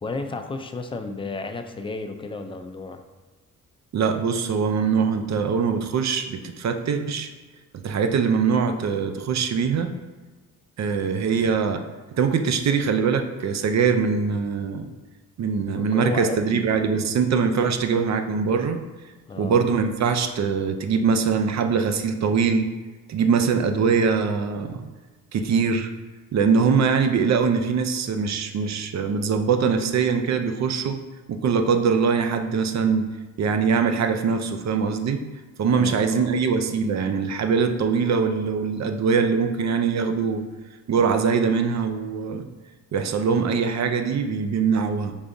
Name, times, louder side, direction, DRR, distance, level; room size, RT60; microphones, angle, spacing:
voice 1, 0.0-3.0 15.7-16.6 19.3-19.7 35.7-36.3, left 3 dB, 15° left, 6 dB, 0.4 m, -33 dB
voice 2, 3.9-7.3 7.8-9.9 10.8-14.9 15.4-18.8 19.4-22.7 23.1-24.8 25.3-25.9 26.3-31.0 31.3-33.1 33.4-35.2 35.6-40.4 40.9-42.4 42.9-45.2, right 5 dB, 55° right, 8 dB, 0.5 m, -22 dB
5.2 x 3.4 x 2.6 m, 1.3 s
cardioid pair, 80°, 34 cm